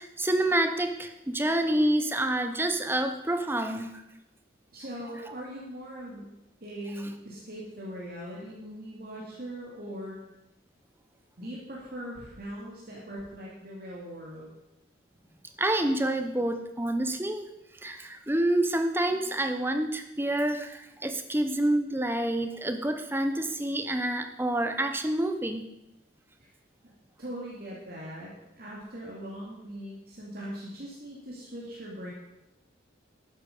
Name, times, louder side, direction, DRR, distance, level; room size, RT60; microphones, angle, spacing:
voice 1, 0.0-4.0 15.6-17.5 17.8-25.6, right 1 dB, 10° right, 7 dB, 0.9 m, -28 dB
voice 2, 4.7-6.3 6.6-10.2 11.4-14.5 26.4-26.5 27.2-32.1, equal, 50° right, -5 dB, 2.6 m, -40 dB
12.5 x 10.0 x 5.4 m, 0.91 s
head